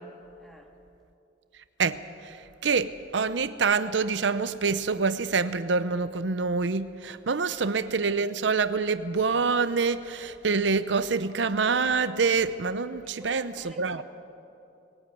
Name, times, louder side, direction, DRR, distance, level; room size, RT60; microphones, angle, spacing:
voice 1, 0.4-0.7 7.5-7.6 13.0-14.0, right 1 dB, ahead, 2.1 m, -49 dB
voice 2, 1.8-14.0, right 4 dB, 80° right, 0.7 m, -26 dB
20.5 x 17.5 x 9.3 m
head